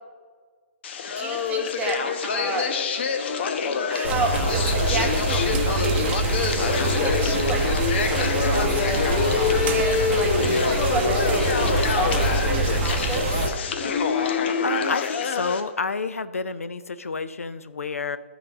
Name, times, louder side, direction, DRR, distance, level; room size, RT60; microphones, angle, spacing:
sound 1, 0.8-15.6, left 5 dB, 50° left, 0.8 m, -25 dB
voice 1, 1.2-2.7 3.9-6.6 6.8-13.5, right 4 dB, 15° right, 1 dB, 1.2 m, -32 dB
sound 2, 4.0-13.5, right 3 dB, 45° right, 0.9 m, -25 dB
voice 2, 14.6-18.2, left 4 dB, 90° left, 13 dB, 0.5 m, -29 dB
11.0 x 3.9 x 6.0 m, 1.5 s
hypercardioid pair, 135°, 7 cm